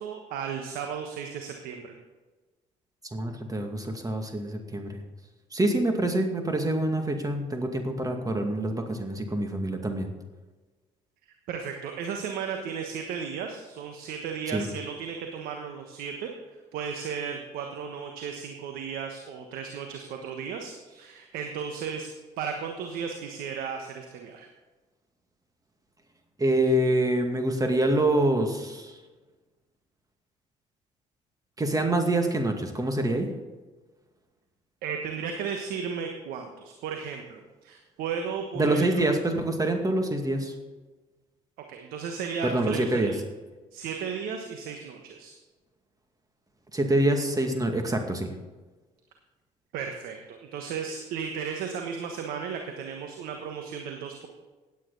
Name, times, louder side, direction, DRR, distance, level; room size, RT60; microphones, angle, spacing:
voice 1, 0.0-1.9 11.5-16.3 16.7-22.1 22.4-24.5 34.8-39.2 41.7-43.1 43.7-45.3 49.7-54.3, right 6 dB, 70° right, 4 dB, 1.3 m, -35 dB
voice 2, 3.0-5.0 5.5-10.1 14.5-14.7 26.4-29.0 31.6-33.3 38.5-40.5 42.4-43.1 46.7-48.3, right 1 dB, 25° right, 4 dB, 2.2 m, -26 dB
16.5 x 9.4 x 4.1 m, 1.2 s
hypercardioid pair, 55°, 16 cm